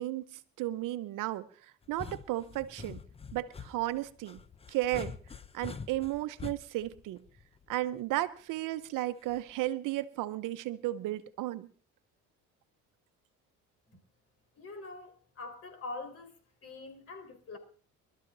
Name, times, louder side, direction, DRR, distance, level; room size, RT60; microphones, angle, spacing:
voice 1, 0.0-1.5 1.9-3.0 3.3-4.4 4.7-5.1 5.5-7.2 7.7-11.7, right 15 dB, 75° right, 0.9 m, -34 dB
sound 1, 1.8-7.9 9.3-9.7, left 5 dB, 20° left, 0.6 m, -46 dB
voice 2, 14.6-16.3 16.6-17.6, left 3 dB, 45° left, 4.4 m, -44 dB
24.0 x 13.0 x 2.7 m
cardioid pair, 110°, 32 cm